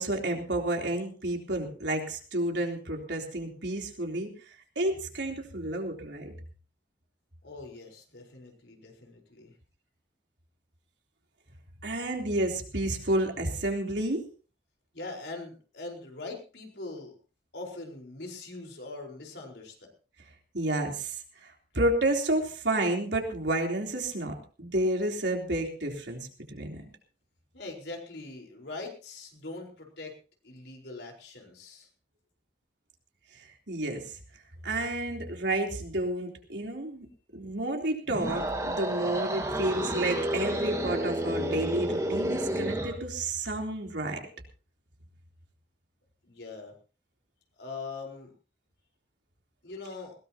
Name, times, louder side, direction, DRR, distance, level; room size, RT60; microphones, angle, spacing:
voice 1, 0.0-4.3 4.8-6.3 11.8-14.2 20.5-21.2 21.7-26.9 33.7-34.2 34.6-37.1 37.3-44.2, right 1 dB, 90° right, 2 dB, 3.6 m, -30 dB
voice 2, 7.4-9.5 14.9-17.1 17.5-19.9 27.5-30.1 30.4-31.9 46.2-46.7 47.6-48.3 49.6-50.1, left 3 dB, 85° left, 1 dB, 4.6 m, -42 dB
sound 1, 38.1-43.0, right 1 dB, 20° right, 1.8 m, -30 dB
20.5 x 17.5 x 2.9 m, 0.37 s
head